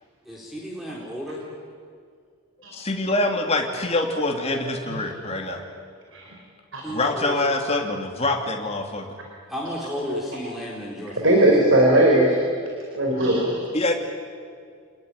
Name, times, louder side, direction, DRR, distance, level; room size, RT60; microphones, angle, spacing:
voice 1, 0.3-1.5 6.8-7.4 9.5-11.5, equal, ahead, -4 dB, 4.0 m, -33 dB
voice 2, 2.7-5.6 6.9-9.1 13.7-13.9, left 2 dB, 30° left, 2 dB, 2.9 m, -25 dB
voice 3, 11.2-12.4 12.9-13.6, right 1 dB, 55° right, -1 dB, 4.6 m, -18 dB
28.5 x 20.0 x 9.9 m, 2.2 s
head